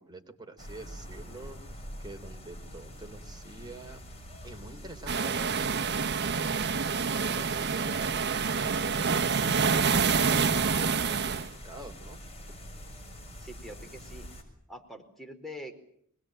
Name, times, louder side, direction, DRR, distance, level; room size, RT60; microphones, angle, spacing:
voice 1, 0.0-4.0 4.4-7.0 7.2-8.8 10.1-12.2, right 2 dB, 20° right, 4 dB, 3.9 m, -46 dB
sound 1, 0.6-14.4, equal, 30° left, 6.6 m, -45 dB
sound 2, 5.1-11.5, right 5 dB, 50° right, 1.1 m, -27 dB
voice 2, 13.4-14.3 14.7-15.7, equal, ahead, 3 dB, 4.6 m, -44 dB
25.0 x 21.0 x 9.1 m, 0.65 s
head